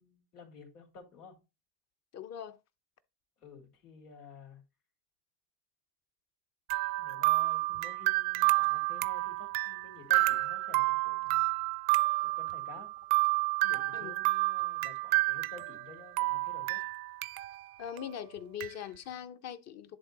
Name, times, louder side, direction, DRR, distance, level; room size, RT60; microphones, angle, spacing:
voice 1, 0.0-1.4 3.4-4.6 7.0-11.4 12.2-12.9 13.6-16.8, left 4 dB, 90° left, 3.5 m, -52 dB
voice 2, 2.1-2.6 13.9-14.2 17.8-20.0, left 9 dB, 35° left, 0.9 m, -41 dB
sound 1, 6.7-15.9 16.2-17.6 18.0-18.1 18.6-18.7, right 23 dB, 65° right, 0.6 m, -30 dB
10.5 x 3.7 x 4.0 m
supercardioid pair, 110°, 45 cm